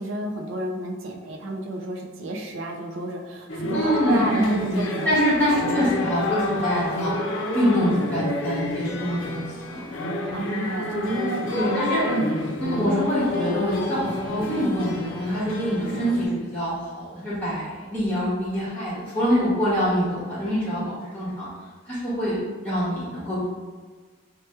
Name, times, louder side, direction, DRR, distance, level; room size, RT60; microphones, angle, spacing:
voice 1, 0.0-5.1 6.5-6.7 10.3-11.4 12.1-12.3, right 1 dB, 65° right, 1 dB, 0.4 m, -31 dB
sound 1, 3.5-16.3, left 1 dB, 60° left, 0.4 m, -29 dB
voice 2, 3.7-4.8 5.0-7.1 7.5-9.8 11.5-12.0 12.6-21.5 21.9-23.5, equal, 10° left, -9 dB, 1.2 m, -25 dB
3.1 x 2.2 x 3.1 m, 1.4 s
head